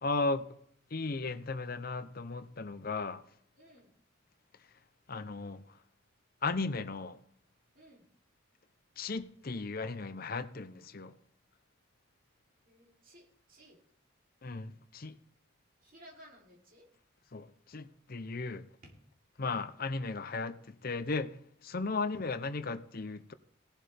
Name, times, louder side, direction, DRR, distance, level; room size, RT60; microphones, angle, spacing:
voice 1, 0.0-0.4 0.9-3.2 5.1-5.6 6.4-7.2 9.0-11.1 14.4-15.2 17.3-18.7 19.4-21.3 21.6-23.3, left 3 dB, 45° left, 0.7 m, -36 dB
voice 2, 3.6-3.9 7.7-8.1 12.6-13.8 15.8-16.9 18.8-19.0, equal, 45° right, 3.1 m, -58 dB
17.0 x 11.5 x 3.5 m
head